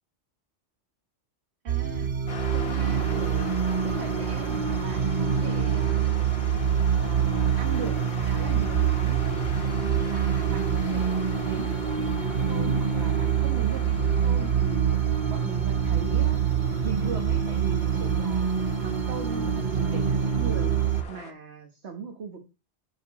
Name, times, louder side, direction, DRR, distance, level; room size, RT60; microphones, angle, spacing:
voice 1, 1.6-2.1 2.5-6.0 7.0-9.3 9.8-16.4 16.8-22.4, right 5 dB, 65° right, 1.6 m, -39 dB
sound 1, 1.7-21.0, right 8 dB, 45° right, 0.8 m, -25 dB
sound 2, 2.3-21.3, left 4 dB, 55° left, 1.5 m, -42 dB
12.0 x 4.9 x 4.2 m
omnidirectional pair, 1.2 m